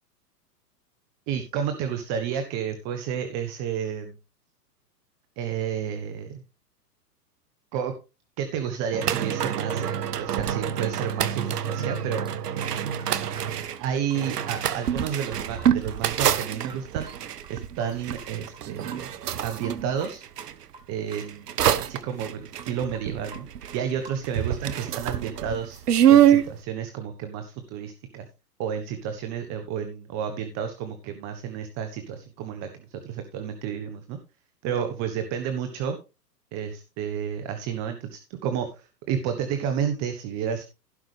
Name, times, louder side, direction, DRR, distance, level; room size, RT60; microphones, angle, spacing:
voice 1, 1.3-4.1 5.4-6.4 7.7-7.9 8.4-12.2 13.8-17.1 17.5-19.1 19.4-20.2 20.9-21.5 21.8-23.5 23.7-25.8 26.1-28.3 28.6-34.2 34.6-36.0 36.5-40.6, right 8 dB, 35° right, 7 dB, 1.5 m, -31 dB
sound 1, 8.9-20.5 21.1-24.0 24.2-26.5, right 10 dB, 75° right, 1.2 m, -25 dB
sound 2, 10.7-10.8 11.0-11.5 11.7-11.8 12.2-12.3 12.6-16.4 16.7-17.5 17.8-18.3 18.5-18.6 18.9-20.8 21.1-21.6 21.8-21.9 22.2-24.4, right 2 dB, 10° right, 1.8 m, -47 dB
16.5 x 5.9 x 3.5 m, 0.29 s
hypercardioid pair, 120°, 48 cm